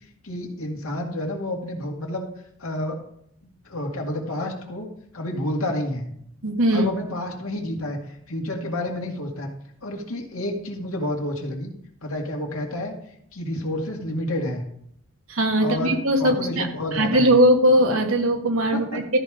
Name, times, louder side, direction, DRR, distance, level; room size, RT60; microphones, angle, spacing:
voice 1, 0.2-2.3 2.6-3.0 3.4-4.9 5.1-6.1 6.7-9.5 9.8-11.7 12.0-12.9 13.3-14.6 15.6-17.3 18.7-19.0, left 1 dB, 90° left, 1 dB, 2.2 m, -29 dB
voice 2, 6.4-6.9 15.3-16.7 16.9-19.2, right 1 dB, 75° right, 3 dB, 1.6 m, -20 dB
13.5 x 5.2 x 5.1 m, 0.69 s
head